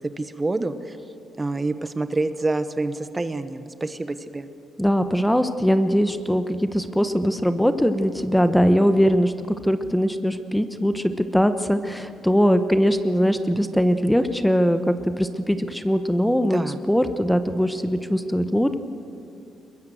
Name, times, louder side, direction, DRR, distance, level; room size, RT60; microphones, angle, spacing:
voice 1, 0.2-1.0 1.4-4.5 16.5-16.8, right 2 dB, 20° right, 11 dB, 1.1 m, -27 dB
voice 2, 4.8-9.3 9.6-16.6 16.9-18.7, equal, 5° left, 10 dB, 1.1 m, -21 dB
22.0 x 22.0 x 7.9 m, 2.6 s
cardioid pair, 90°, 0 cm